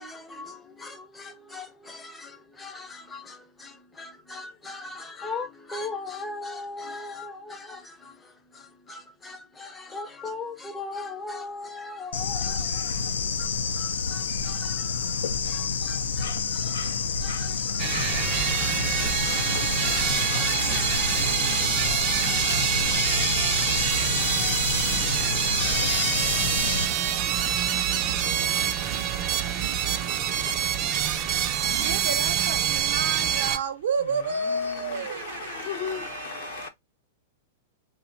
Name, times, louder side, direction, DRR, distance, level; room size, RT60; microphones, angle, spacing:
voice 1, 0.0-29.6, left 3 dB, 15° left, 0.5 m, -41 dB
Bird / Insect, 12.1-26.9, left 5 dB, 90° left, 0.4 m, -28 dB
sound 1, 17.8-33.6, right 10 dB, 40° right, 0.4 m, -26 dB
voice 2, 31.1-31.9 32.9-33.0 34.0-36.7, left 7 dB, 60° left, 0.7 m, -37 dB
voice 3, 31.8-36.7, right 4 dB, 80° right, 0.7 m, -31 dB
2.8 x 2.0 x 2.5 m
hypercardioid pair, 130°, 0 cm